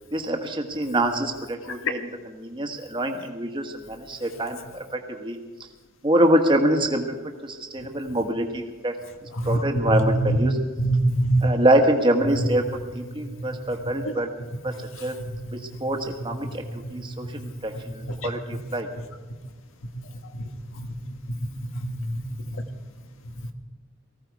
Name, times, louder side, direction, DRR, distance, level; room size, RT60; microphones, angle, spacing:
voice 1, 0.1-5.4 6.0-7.1 7.4-9.0 9.4-10.6 11.4-14.3 14.6-14.7 15.0-15.2 15.5-16.6 16.9-18.9, right 1 dB, 25° right, 4 dB, 1.4 m, -25 dB
voice 2, 10.8-11.5 14.0-14.1 18.2-18.3 20.3-20.4 21.8-22.2, right 2 dB, 75° left, 6 dB, 1.6 m, -23 dB
19.0 x 15.5 x 4.7 m, 1.3 s
head